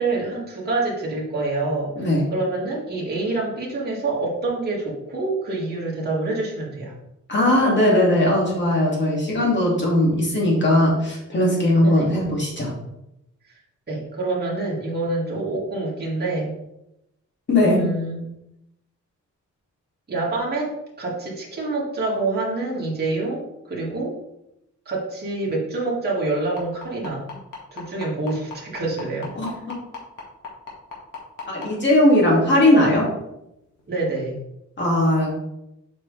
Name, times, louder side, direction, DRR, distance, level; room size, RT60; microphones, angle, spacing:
voice 1, 0.0-6.9 11.8-12.1 13.9-16.5 17.6-18.2 20.1-24.2 24.9-27.2 27.7-29.3 33.9-34.4, right 2 dB, 30° right, -5 dB, 2.1 m, -26 dB
voice 2, 7.3-12.7 17.5-17.8 29.4-29.8 31.5-33.1 34.8-35.3, left 1 dB, 35° left, -3 dB, 2.4 m, -19 dB
sound 1, 26.6-31.7 32.7-32.8 33.2-33.3 33.8-33.9, left 5 dB, 80° left, 1.9 m, -35 dB
7.5 x 5.4 x 3.3 m, 0.87 s
wide cardioid pair, 160°, 31 cm